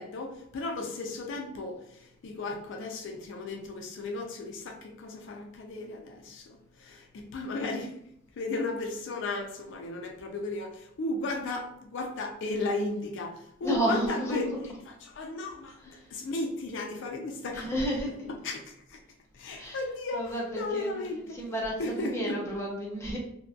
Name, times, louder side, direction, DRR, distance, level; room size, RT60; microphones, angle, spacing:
voice 1, 0.0-8.0 8.4-17.9 18.3-18.6 18.9-19.0 19.3-21.5 21.8-22.4, left 2 dB, 60° left, 2 dB, 0.4 m, -35 dB
voice 2, 13.6-14.4 17.5-18.1 19.6-19.8 20.1-20.9 21.3-23.2, equal, 15° left, -2 dB, 0.5 m, -31 dB
2.7 x 2.2 x 2.3 m, 0.74 s
head